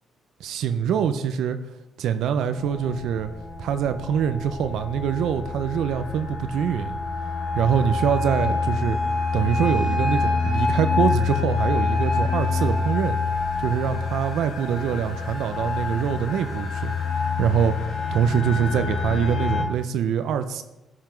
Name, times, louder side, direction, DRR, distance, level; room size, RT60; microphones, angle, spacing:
voice 1, 0.4-1.6 2.0-3.3 3.6-7.0 7.5-9.0 9.3-13.2 13.6-16.9 17.4-17.8 18.1-20.6, right 8 dB, 80° right, 9 dB, 0.5 m, -24 dB
sound 1, 2.5-19.6, left 4 dB, 70° left, 3.9 m, -26 dB
12.0 x 5.7 x 4.5 m, 0.97 s
cardioid pair, 90°, 0 cm